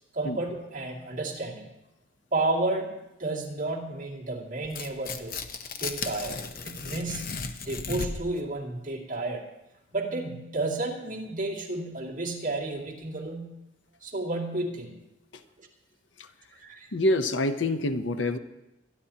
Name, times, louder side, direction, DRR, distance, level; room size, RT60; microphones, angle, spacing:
voice 1, 0.1-1.7 2.3-5.4 5.8-6.4 6.6-7.3 7.6-9.4 9.9-13.6 14.0-15.0 15.6-15.7 16.5-16.9, right 2 dB, 45° right, -3 dB, 2.4 m, -32 dB
Tearing, 4.6-8.4, left 4 dB, 50° left, 0.9 m, -35 dB
voice 2, 16.9-18.4, left 1 dB, 85° left, 9 dB, 0.8 m, -26 dB
24.0 x 11.0 x 2.9 m, 0.96 s
head